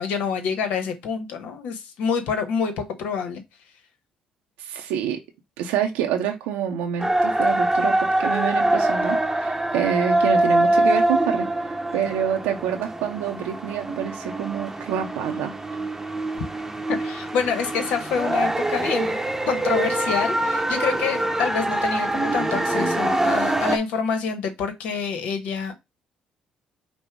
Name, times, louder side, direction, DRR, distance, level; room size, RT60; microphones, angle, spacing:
voice 1, 0.0-3.4 16.9-19.2 19.5-25.7, left 6 dB, 80° left, 1.0 m, -27 dB
voice 2, 4.6-5.2 5.6-11.5 11.9-15.5, right 8 dB, 90° right, 0.6 m, -27 dB
sound 1, 7.0-23.8, right 1 dB, 10° right, 0.8 m, -24 dB
5.4 x 2.1 x 4.5 m
supercardioid pair, 65°, 2 cm